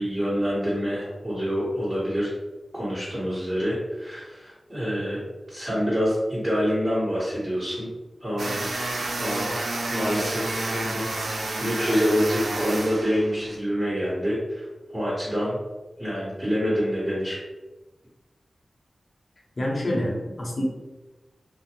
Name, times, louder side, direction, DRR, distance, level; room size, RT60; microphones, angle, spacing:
voice 1, 0.0-2.3 2.7-5.2 5.5-7.9 8.2-8.9 9.2-9.6 9.9-11.1 11.6-14.6 14.9-15.6 16.0-17.4, equal, 5° right, -12 dB, 1.4 m, -26 dB
sound 1, 8.4-13.5, right 2 dB, 80° right, 0.4 m, -30 dB
voice 2, 19.6-20.6, left 1 dB, 55° left, -3 dB, 0.8 m, -27 dB
2.5 x 2.0 x 2.9 m, 1.1 s
cardioid pair, 45°, 0 cm